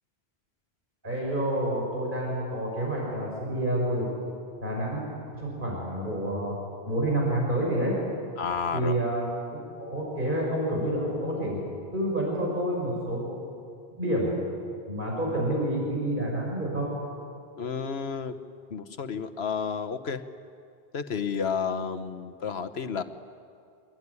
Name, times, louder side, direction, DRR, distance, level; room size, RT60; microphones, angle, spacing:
voice 1, 1.0-4.1 4.6-5.0 5.3-6.5 6.8-7.9 8.7-11.6 11.9-13.2 14.0-14.3 14.9-16.9, right 1 dB, 50° right, -2 dB, 5.8 m, -28 dB
voice 2, 8.4-9.0 17.6-18.4 18.7-20.2 20.9-23.0, left 6 dB, 85° left, 9 dB, 1.4 m, -31 dB
25.5 x 22.0 x 9.8 m, 2.4 s
omnidirectional pair, 1.0 m